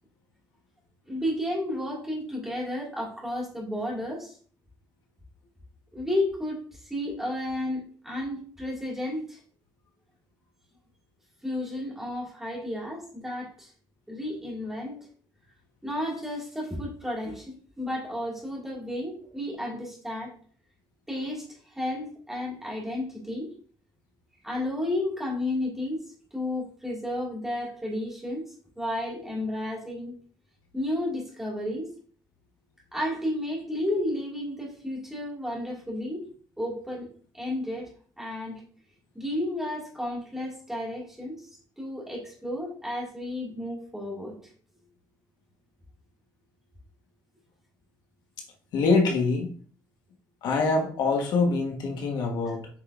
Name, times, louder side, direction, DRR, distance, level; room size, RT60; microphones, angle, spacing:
voice 1, 1.1-4.4 5.9-9.4 11.4-13.7 14.1-15.1 15.8-20.3 21.1-23.5 24.4-26.1 26.3-30.1 30.7-31.9 32.9-36.3 36.6-37.1 37.3-37.9 38.2-38.6 39.1-41.5 41.8-44.3, left 1 dB, 5° right, -4 dB, 2.3 m, -32 dB
voice 2, 48.7-49.5 50.4-52.7, left 3 dB, 70° left, 1 dB, 1.5 m, -24 dB
8.1 x 5.3 x 2.6 m, 0.44 s
cardioid pair, 175°, 8 cm